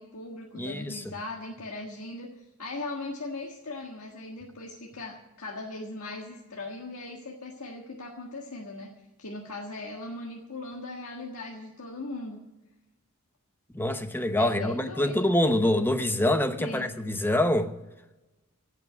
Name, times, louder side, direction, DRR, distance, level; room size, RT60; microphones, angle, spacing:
voice 1, 0.0-8.9 9.2-12.4 14.4-15.3 16.6-16.9, left 2 dB, 90° left, 1.7 m, -39 dB
voice 2, 0.5-1.0 13.7-17.7, left 1 dB, 10° left, 0.8 m, -25 dB
16.5 x 6.1 x 9.3 m
head